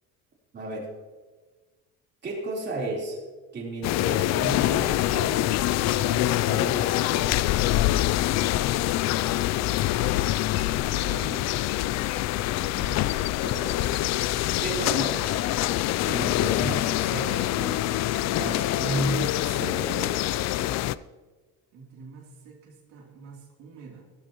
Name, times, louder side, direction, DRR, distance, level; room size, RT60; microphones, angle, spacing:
voice 1, 0.5-0.9 2.2-3.2 3.5-5.4 5.9-7.4 11.0-11.4 12.6-14.1 14.6-15.3 16.0-17.9 18.3-20.2, right 2 dB, 35° right, -3 dB, 3.9 m, -34 dB
sound 1, 3.8-20.9, left 15 dB, 55° left, 0.4 m, -25 dB
voice 2, 10.8-11.5 21.7-24.0, right 5 dB, 85° right, -2 dB, 3.2 m, -45 dB
15.5 x 13.0 x 3.0 m, 1.3 s
cardioid pair, 130°, 32 cm